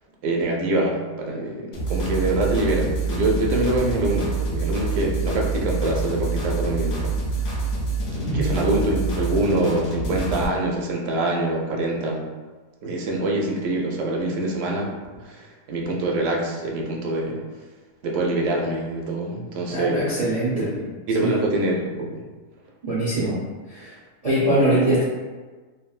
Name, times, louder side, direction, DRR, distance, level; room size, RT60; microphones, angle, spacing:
voice 1, 0.2-7.2 8.1-12.2 12.8-14.9 15.3-17.4 18.0-20.2 20.4-22.2, right 2 dB, 70° right, 0 dB, 0.8 m, -25 dB
sound 1, 1.7-10.4, right 3 dB, 60° left, 0.5 m, -26 dB
voice 2, 19.7-20.7 21.2-21.4 22.8-23.4 23.7-23.9 24.2-25.0, right 1 dB, 50° right, -9 dB, 0.4 m, -22 dB
3.3 x 2.2 x 2.4 m, 1.3 s
omnidirectional pair, 1.5 m